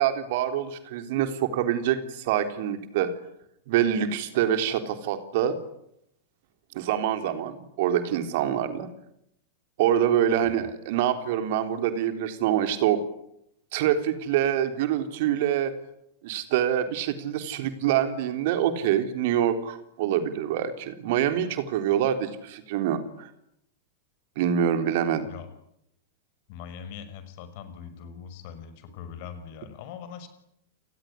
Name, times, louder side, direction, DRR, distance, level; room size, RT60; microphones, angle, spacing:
voice 1, 0.0-3.1 3.7-5.6 6.7-8.9 9.8-13.0 13.7-15.7 16.2-23.3 24.4-25.3, right 10 dB, 50° right, 9 dB, 3.5 m, -25 dB
voice 2, 26.5-30.3, left 7 dB, 50° left, 11 dB, 6.0 m, -41 dB
29.5 x 20.5 x 9.9 m, 0.77 s
figure-of-eight pair, 90°, 0 cm